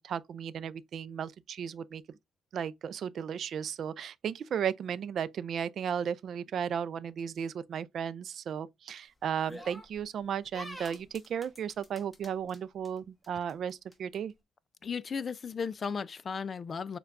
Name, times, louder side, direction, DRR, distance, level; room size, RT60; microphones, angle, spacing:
voice 1, 0.0-2.0 2.5-14.3, right 8 dB, 60° right, 0.3 m, -35 dB
sound 1, 9.5-10.0 10.5-12.6 12.8-13.0 13.2-14.2, equal, 5° left, 1.1 m, -46 dB
voice 2, 14.8-17.0, left 6 dB, 45° left, 0.4 m, -35 dB
6.6 x 2.3 x 2.5 m
cardioid pair, 90°, 0 cm